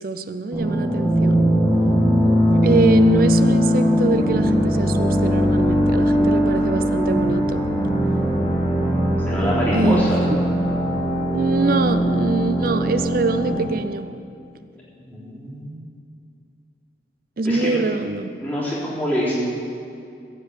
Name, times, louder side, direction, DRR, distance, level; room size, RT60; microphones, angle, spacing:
voice 1, 0.0-1.5 2.6-7.6 9.7-10.4 11.3-14.1 17.4-18.3, right 3 dB, 50° right, 10 dB, 0.5 m, -24 dB
sound 1, 0.5-13.6, equal, 10° right, 2.5 m, -20 dB
voice 2, 9.3-10.2 15.0-15.8 17.4-17.8 18.4-19.3, equal, 10° left, -9 dB, 3.5 m, -25 dB
15.0 x 5.3 x 8.3 m, 2.4 s
head